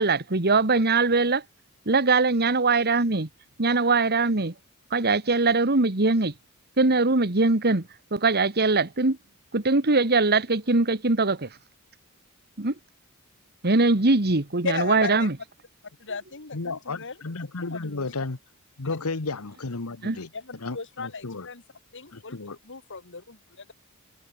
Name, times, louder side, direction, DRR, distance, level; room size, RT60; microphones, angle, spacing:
voice 1, 0.0-1.4 1.9-3.3 3.6-4.5 4.9-6.3 6.8-9.2 9.5-11.5 12.6-12.7 13.6-15.3 20.0-20.2, right 3 dB, 50° right, 1.9 m, -22 dB
voice 2, 14.6-15.3 16.0-18.1 18.8-19.0 20.3-21.6 21.9-22.4 22.6-23.7, left 4 dB, 60° left, 2.3 m, -36 dB
voice 3, 16.5-18.4 18.8-20.3 20.6-21.5 22.1-22.6, left 3 dB, 85° left, 1.3 m, -33 dB
head